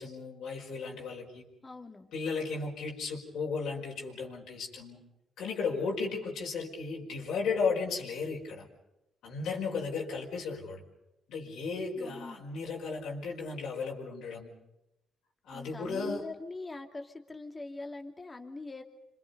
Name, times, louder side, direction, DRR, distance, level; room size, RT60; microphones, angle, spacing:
voice 1, 0.0-1.4 2.1-5.0 5.4-8.7 9.2-10.8 11.3-14.5 15.5-16.3, left 4 dB, 75° left, -2 dB, 5.5 m, -35 dB
voice 2, 1.6-2.1 12.0-12.4 15.5-18.8, left 3 dB, 25° left, 5 dB, 2.7 m, -43 dB
28.5 x 26.5 x 5.4 m, 0.90 s
cardioid pair, 90°, 0 cm